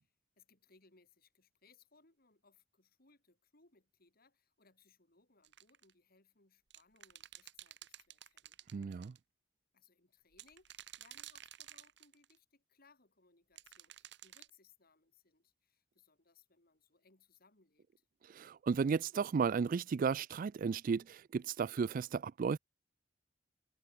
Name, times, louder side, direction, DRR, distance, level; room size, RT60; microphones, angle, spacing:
voice 1, 0.0-8.6 9.7-18.0, left 4 dB, 50° left, 4.4 m, -69 dB
sound 1, 5.4-5.9 6.7-9.2 10.3-12.4 13.6-14.5, right 12 dB, 65° right, 1.5 m, -53 dB
voice 2, 8.7-9.1 18.2-22.6, right 5 dB, 45° right, 0.3 m, -34 dB
head